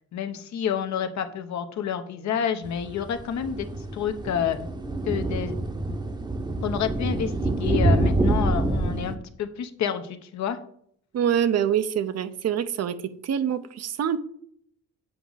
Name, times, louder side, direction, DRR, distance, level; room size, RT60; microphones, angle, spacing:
voice 1, 0.1-3.7 3.9-4.6 5.1-5.5 6.6-10.6, left 8 dB, 70° left, 8 dB, 0.9 m, -29 dB
sound 1, 2.6-9.1, right 2 dB, 15° right, 0.8 m, -26 dB
voice 2, 11.1-13.0 13.2-14.2, right 9 dB, 55° right, 12 dB, 0.7 m, -25 dB
7.9 x 4.7 x 4.0 m, 0.65 s
cardioid pair, 90°, 30 cm